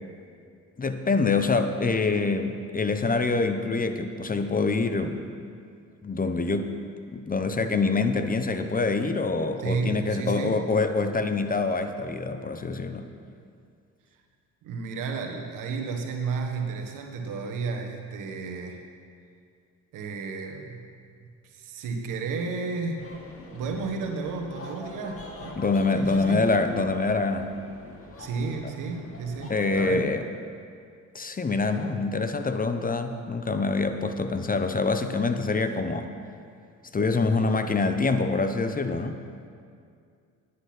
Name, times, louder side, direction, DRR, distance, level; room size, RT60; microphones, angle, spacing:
voice 1, 0.8-5.2 6.0-6.7 7.1-13.1 25.6-27.5 29.5-30.2 31.1-36.1 36.9-39.2, left 3 dB, 25° left, 8 dB, 0.8 m, -25 dB
voice 2, 9.6-10.6 14.6-18.8 19.9-20.8 21.4-23.1 23.5-25.6 25.9-26.5 28.2-30.2, right 4 dB, 75° right, 3 dB, 1.4 m, -32 dB
sound 1, 23.0-29.9, left 2 dB, 45° left, 2.0 m, -44 dB
10.5 x 8.3 x 6.0 m, 2.3 s
supercardioid pair, 65°, 32 cm